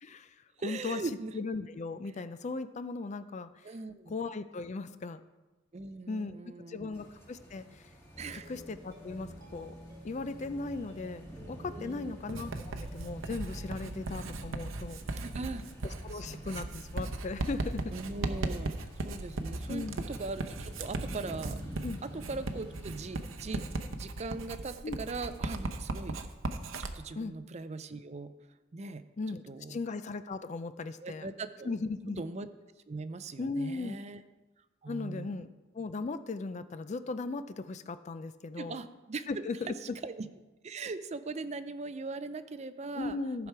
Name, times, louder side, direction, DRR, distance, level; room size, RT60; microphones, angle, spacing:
voice 1, 0.0-0.3 0.6-1.0 1.3-3.5 4.1-5.2 6.1-7.9 8.5-9.7 10.0-15.0 16.0-17.9 19.7-20.0 21.8-22.0 24.8-25.0 27.2-27.4 29.2-29.4 29.7-31.3 31.6-32.2 33.4-34.0 34.9-35.5 35.7-38.8 39.3-40.0 43.0-43.5, left 3 dB, 35° left, 12 dB, 0.4 m, -37 dB
voice 2, 0.6-1.4 3.6-4.1 5.7-7.1 8.2-8.5 11.7-12.2 13.8-14.1 14.3-14.4 15.2-15.7 16.1-16.6 17.9-21.6 22.0-23.6 24.0-26.2 26.8-28.3 28.7-29.0 29.5-29.8 31.0-31.7 32.2-32.5 32.9-34.2 34.8-35.5 38.5-40.3 40.6-43.2 43.4-43.5, right 3 dB, 35° right, 12 dB, 0.4 m, -40 dB
sound 1, 6.9-24.0, equal, 15° left, 1.7 m, -49 dB
sound 2, 8.1-14.5, equal, 15° right, 1.1 m, -50 dB
Writing, 12.3-26.9, right 2 dB, 85° right, 0.8 m, -37 dB
14.5 x 5.9 x 4.7 m, 1.1 s
head